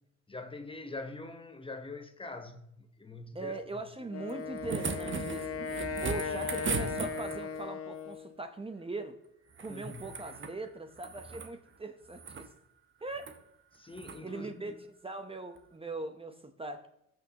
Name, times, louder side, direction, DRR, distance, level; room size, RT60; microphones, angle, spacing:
voice 1, 0.3-3.6 9.7-10.1 13.7-14.7, left 3 dB, 15° left, 1.0 m, -44 dB
voice 2, 3.3-5.5 6.0-9.2 9.6-12.5 13.0-13.3 14.2-14.8 15.0-16.9, right 2 dB, 20° right, 0.8 m, -40 dB
Wind instrument woodwind instrument, 4.1-8.4, left 5 dB, 50° left, 1.3 m, -37 dB
sound 1, 4.3-7.6 9.5-10.6 10.9-11.5 12.0-12.5 13.1-13.4 13.9-14.2 15.6-15.7, right 5 dB, 40° right, 1.1 m, -38 dB
19.0 x 6.3 x 2.9 m
cardioid pair, 90°, 30 cm